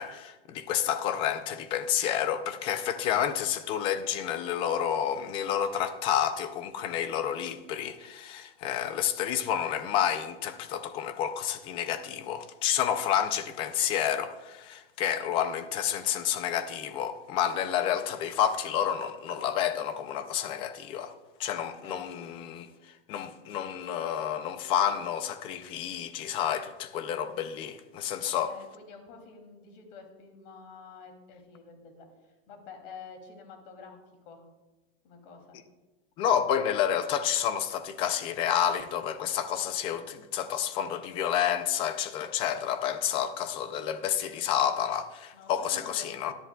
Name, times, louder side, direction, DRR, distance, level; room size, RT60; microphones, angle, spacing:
voice 1, 0.0-21.1 21.4-22.7 23.1-28.5 36.2-46.3, left 9 dB, 20° left, 0.3 m, -29 dB
voice 2, 21.6-22.2 28.2-34.0 34.2-34.4 35.0-35.6 45.3-46.1, left 5 dB, 60° left, 2.7 m, -49 dB
17.0 x 11.0 x 2.2 m
supercardioid pair, 165°, 30 cm